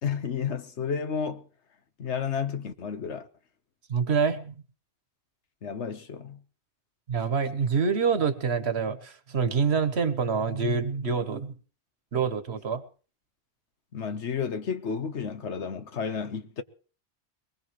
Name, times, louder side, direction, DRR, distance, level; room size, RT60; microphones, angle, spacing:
voice 1, 0.0-1.4 2.0-3.3 5.6-6.4 13.9-16.6, left 6 dB, 80° left, 1.4 m, -31 dB
voice 2, 3.9-4.5 7.1-11.5 12.1-12.8, right 5 dB, 70° right, 1.5 m, -26 dB
22.0 x 20.5 x 3.1 m
omnidirectional pair, 1.1 m